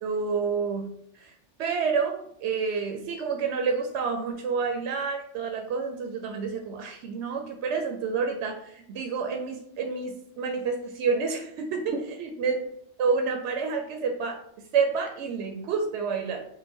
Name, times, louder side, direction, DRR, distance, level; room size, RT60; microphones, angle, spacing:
voice 1, 0.0-0.9 1.2-1.3 1.6-12.7 13.0-14.4 14.7-16.5, right 5 dB, 70° right, 3 dB, 0.8 m, -29 dB
5.4 x 2.1 x 3.5 m, 0.69 s
omnidirectional pair, 1.2 m